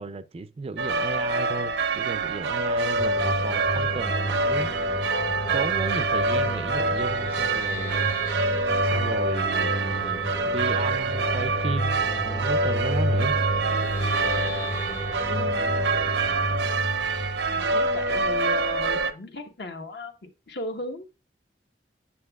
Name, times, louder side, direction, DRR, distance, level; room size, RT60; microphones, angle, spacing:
voice 1, 0.0-4.7 5.5-8.1 8.8-13.4, right 3 dB, 35° right, 0.4 m, -34 dB
sound 1, 0.8-19.1, right 3 dB, 85° right, 0.7 m, -26 dB
sound 2, 3.0-18.4, equal, 15° left, 0.7 m, -31 dB
voice 2, 15.3-16.0 17.5-21.1, left 2 dB, 65° left, 1.1 m, -36 dB
8.6 x 7.0 x 2.3 m
head